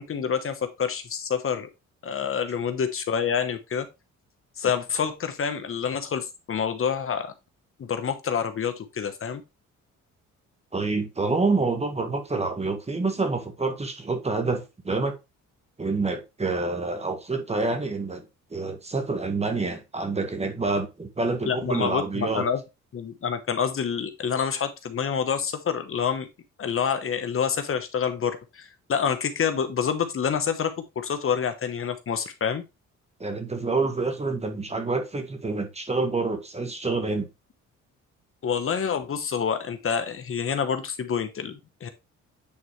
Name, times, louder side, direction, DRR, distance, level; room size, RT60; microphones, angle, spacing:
voice 1, 0.0-1.7 2.0-3.9 4.6-7.3 7.8-9.4 21.4-22.6 22.9-26.3 26.6-32.6 38.4-41.9, left 7 dB, 45° left, 1.0 m, -27 dB
voice 2, 10.7-15.2 15.8-18.2 18.5-22.5 33.2-37.3, right 3 dB, 20° right, 1.5 m, -27 dB
8.6 x 4.1 x 3.1 m
cardioid pair, 90°, 30 cm